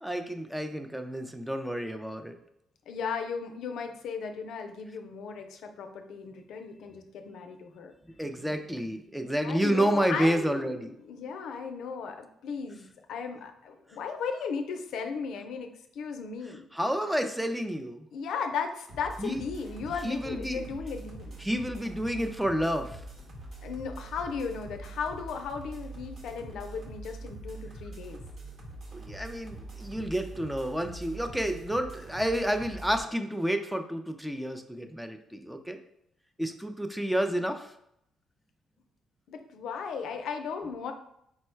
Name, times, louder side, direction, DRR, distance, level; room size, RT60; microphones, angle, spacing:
voice 1, 0.0-2.3 8.2-11.0 16.5-18.1 19.2-19.4 20.0-20.7 21.4-23.0 28.9-35.8 36.4-37.7, equal, 5° right, 6 dB, 0.4 m, -30 dB
voice 2, 2.9-7.9 9.4-10.7 11.0-16.6 18.1-21.4 23.6-28.2 39.3-40.9, left 5 dB, 75° left, 6 dB, 0.5 m, -36 dB
sound 1, 18.9-33.0, right 2 dB, 55° right, 1.1 m, -44 dB
4.5 x 2.1 x 4.4 m, 0.75 s
cardioid pair, 90°, 0 cm